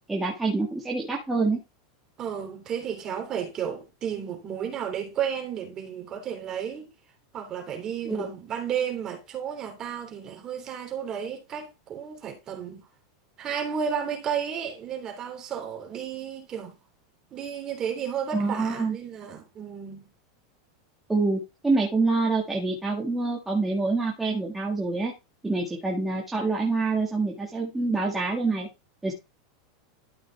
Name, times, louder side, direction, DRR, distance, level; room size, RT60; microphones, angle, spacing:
voice 1, 0.1-1.6 8.1-8.3 18.3-19.0 21.1-25.1 25.4-28.7 29.0-29.1, right 3 dB, 10° right, 1.9 m, -26 dB
voice 2, 2.2-6.9 7.3-12.8 13.4-16.7 17.3-20.1, right 8 dB, 30° right, 3.1 m, -33 dB
12.5 x 5.4 x 3.5 m
supercardioid pair, 140°, 2 cm